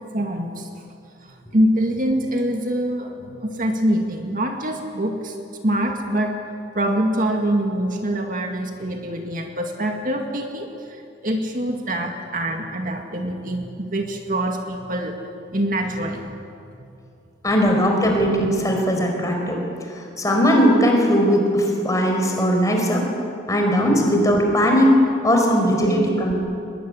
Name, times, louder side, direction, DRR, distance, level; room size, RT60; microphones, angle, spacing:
voice 1, 0.1-0.7 1.2-5.4 5.6-6.3 6.7-15.2 15.5-16.3 23.9-24.0, right 1 dB, 45° right, 3 dB, 2.1 m, -24 dB
voice 2, 17.4-19.6 20.2-23.1 23.5-24.9 25.2-26.3, equal, 15° left, 1 dB, 4.9 m, -18 dB
24.5 x 21.5 x 9.9 m, 2.6 s
head